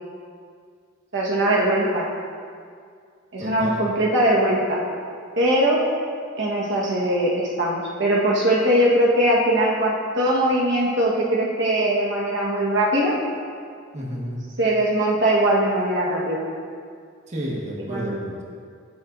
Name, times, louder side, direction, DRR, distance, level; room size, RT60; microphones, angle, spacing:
voice 1, 1.1-2.1 3.3-4.8 5.4-5.9 6.4-13.1 14.6-16.4 17.9-18.3, right 1 dB, 60° right, -4 dB, 1.4 m, -21 dB
voice 2, 3.4-3.8 13.9-14.4 17.3-18.4, equal, 35° right, -4 dB, 1.5 m, -31 dB
16.0 x 7.7 x 2.6 m, 2.2 s
head